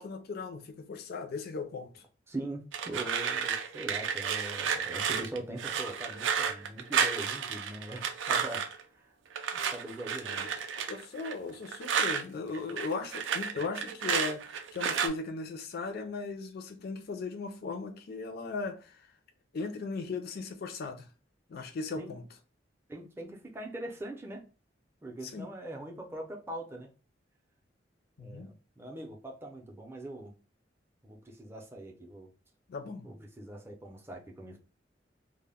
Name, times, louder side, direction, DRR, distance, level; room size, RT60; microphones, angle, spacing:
voice 1, 0.0-2.0 10.8-19.0 19.5-21.1 21.5-22.2 25.2-25.5 28.2-28.5 32.7-33.1, left 4 dB, 55° left, 0.4 m, -37 dB
voice 2, 2.3-8.6 8.9-9.1 9.5-10.5 22.0-22.1 22.9-24.4 25.0-26.9 28.2-30.3 31.0-32.3 33.0-34.6, right 1 dB, 15° right, 0.5 m, -42 dB
sound 1, 2.7-8.8 9.4-12.2 12.5-15.1, right 7 dB, 75° right, 0.4 m, -32 dB
2.1 x 2.0 x 3.4 m
head